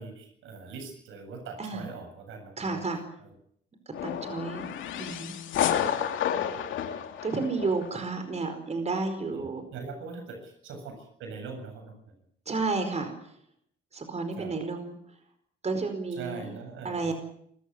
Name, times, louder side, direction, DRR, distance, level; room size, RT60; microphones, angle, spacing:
voice 1, 0.0-2.8 3.2-3.3 9.3-12.2 14.4-14.5 16.1-17.1, right 4 dB, 85° right, 5 dB, 7.5 m, -42 dB
voice 2, 2.6-3.0 4.0-4.6 5.0-5.3 7.2-9.6 12.5-13.1 13.9-15.0 15.6-16.5 16.8-17.1, right 3 dB, 35° right, 7 dB, 4.7 m, -31 dB
sound 1, 3.9-8.0, left 9 dB, 80° left, 2.7 m, -30 dB
25.0 x 15.0 x 9.6 m, 0.69 s
cardioid pair, 90°, 20 cm